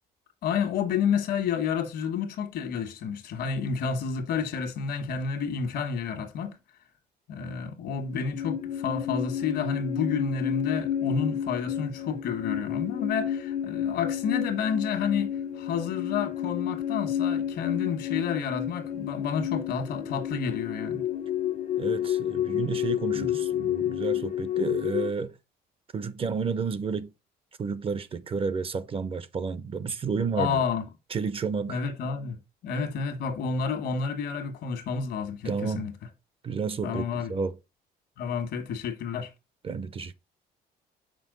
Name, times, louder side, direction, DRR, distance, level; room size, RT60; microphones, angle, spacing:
voice 1, 0.4-6.6 7.3-21.0 23.1-23.4 30.3-30.9 31.7-35.9 36.8-37.3 38.2-39.3, left 6 dB, 75° left, 1.5 m, -30 dB
sound 1, 8.0-25.1, left 10 dB, 45° left, 0.7 m, -30 dB
voice 2, 21.8-25.3 25.9-27.1 27.6-30.6 31.1-31.8 35.4-35.9 36.4-37.6 39.6-40.1, right 5 dB, 35° right, 0.6 m, -31 dB
6.1 x 4.4 x 3.9 m
cardioid pair, 110°, 17 cm